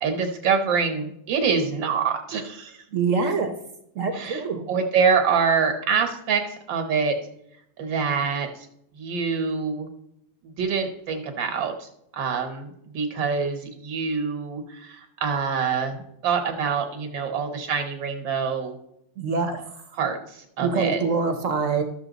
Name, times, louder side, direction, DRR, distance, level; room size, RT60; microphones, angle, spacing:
voice 1, 0.0-2.8 4.1-4.4 4.7-7.1 7.8-8.7 9.0-9.9 10.4-11.9 12.1-18.8 19.9-21.0, right 6 dB, 90° right, 5 dB, 2.0 m, -25 dB
voice 2, 2.9-3.5 3.9-4.6 19.2-19.8 20.6-21.8, right 4 dB, 55° right, 7 dB, 1.0 m, -25 dB
13.0 x 7.0 x 4.0 m, 0.78 s
omnidirectional pair, 2.0 m